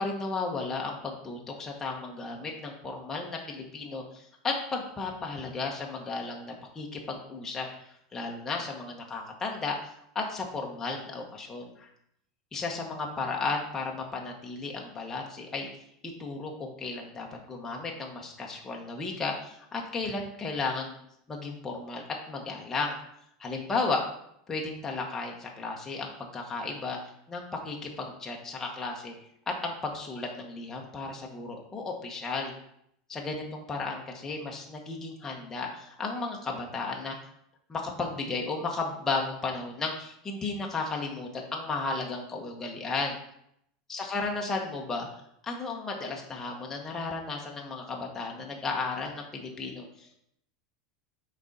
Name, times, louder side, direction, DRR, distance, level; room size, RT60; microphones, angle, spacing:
voice 1, 0.0-9.8 10.1-11.9 12.5-15.7 16.2-21.0 21.3-23.0 23.4-24.0 24.5-29.1 29.5-32.5 33.1-37.1 37.7-43.2 43.9-45.1 45.4-50.1, left 3 dB, 15° left, 0 dB, 0.9 m, -34 dB
6.0 x 4.2 x 4.0 m, 0.73 s
supercardioid pair, 150°, 3 cm